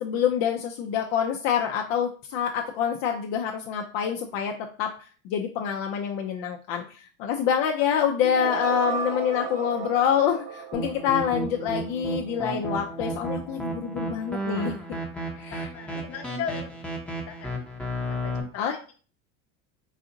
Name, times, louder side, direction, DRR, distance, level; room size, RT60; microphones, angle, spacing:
voice 1, 0.0-4.9 5.2-14.7 15.4-16.0 18.6-18.9, left 8 dB, 60° left, 2 dB, 0.7 m, -26 dB
sound 1, 8.2-12.1, right 6 dB, 65° right, 1.4 m, -34 dB
sound 2, 10.7-18.4, right 1 dB, 5° left, 0.8 m, -33 dB
voice 2, 15.3-16.7 17.3-17.5 18.1-18.9, left 8 dB, 35° left, 4 dB, 1.0 m, -37 dB
4.1 x 2.5 x 3.9 m, 0.39 s
supercardioid pair, 105°, 40 cm